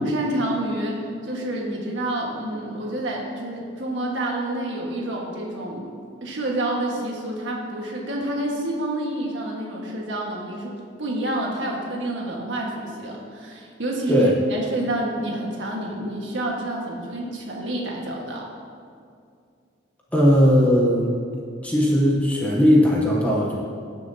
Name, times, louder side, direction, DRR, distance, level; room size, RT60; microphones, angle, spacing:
voice 1, 0.0-5.8 6.2-18.5, right 1 dB, 80° right, -2 dB, 1.6 m, -28 dB
voice 2, 20.1-21.1 21.6-23.5, equal, 10° left, -4 dB, 0.9 m, -18 dB
16.0 x 6.4 x 2.8 m, 2.3 s
head